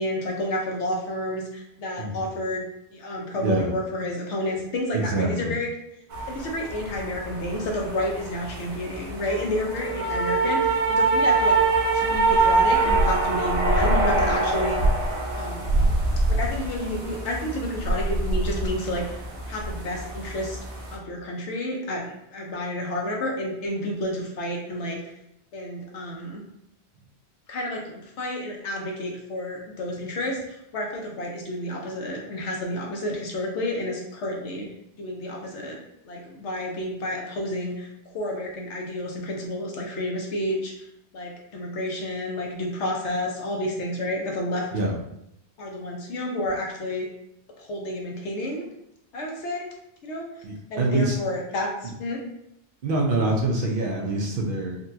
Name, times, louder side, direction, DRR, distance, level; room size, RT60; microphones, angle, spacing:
voice 1, 0.0-2.6 2.9-5.7 6.3-11.6 11.9-14.8 15.3-15.9 16.3-19.2 19.5-20.6 20.9-25.0 25.5-26.4 27.5-34.7 35.0-35.8 36.0-37.9 38.1-40.7 41.1-44.7 45.6-47.0 47.6-48.7 49.1-49.7 50.0-50.3 50.7-52.2, left 1 dB, 85° left, -1 dB, 1.0 m, -30 dB
voice 2, 2.0-2.4 3.3-3.7 4.9-5.6 44.7-44.9 50.4-51.2 51.8-51.9 52.8-54.8, right 2 dB, 60° right, 0 dB, 0.7 m, -25 dB
sound 1, 6.1-21.0, right 2 dB, 85° right, 1.0 m, -24 dB
3.8 x 2.2 x 2.7 m, 0.81 s
omnidirectional pair, 1.2 m